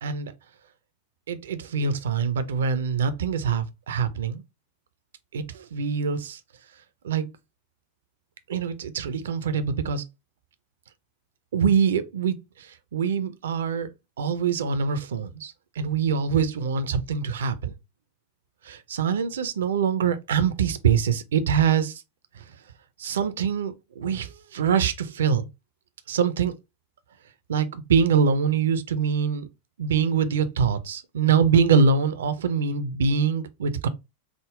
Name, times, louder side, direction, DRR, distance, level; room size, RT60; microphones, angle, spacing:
voice 1, 0.0-0.3 1.3-4.4 5.3-6.4 7.0-7.3 8.5-10.0 11.5-12.4 12.9-13.9 14.2-17.7 18.7-22.0 23.0-25.5 26.1-26.5 27.5-29.5 29.8-33.9, right 6 dB, 60° right, 0.4 m, -24 dB
3.6 x 2.0 x 3.5 m
figure-of-eight pair, 90°, 0 cm